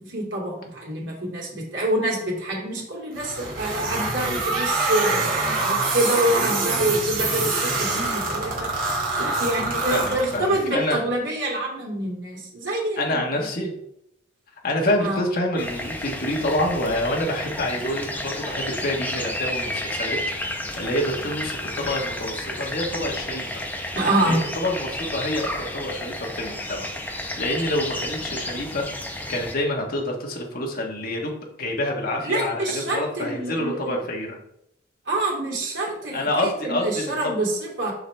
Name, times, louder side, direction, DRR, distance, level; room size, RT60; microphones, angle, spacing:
voice 1, 0.0-8.7 9.2-13.5 15.0-15.2 23.9-24.4 32.2-34.0 35.1-37.9, right 1 dB, 70° right, -3 dB, 2.7 m, -26 dB
sound 1, 3.2-10.7, right 3 dB, 45° right, 2.1 m, -25 dB
voice 2, 9.9-11.0 13.0-13.7 14.6-23.6 24.2-28.8 29.3-34.4 36.1-37.4, left 1 dB, 50° left, 0 dB, 1.4 m, -27 dB
sound 2, 15.6-29.5, left 1 dB, 10° left, 0.7 m, -31 dB
6.5 x 5.7 x 3.4 m, 0.79 s
head